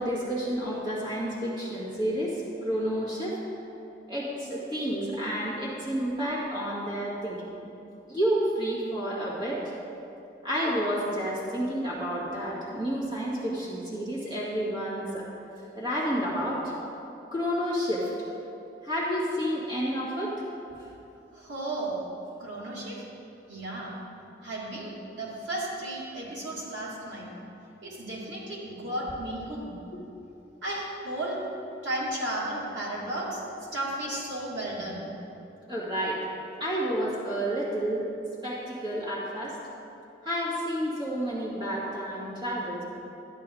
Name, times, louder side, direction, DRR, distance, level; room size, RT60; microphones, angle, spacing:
voice 1, 0.0-3.4 4.1-7.7 8.1-9.7 10.4-15.3 15.8-16.7 17.3-18.1 18.8-20.3 20.8-20.9 35.7-36.2 36.6-38.0 38.4-39.6 40.2-42.8, equal, 25° right, -7 dB, 2.1 m, -30 dB
voice 2, 21.3-22.0 22.4-23.0 23.5-23.9 24.4-27.3 27.8-29.8 30.6-31.4 31.8-33.4 33.7-35.1, right 1 dB, 90° right, -6 dB, 2.6 m, -34 dB
12.5 x 10.0 x 3.9 m, 2.8 s
head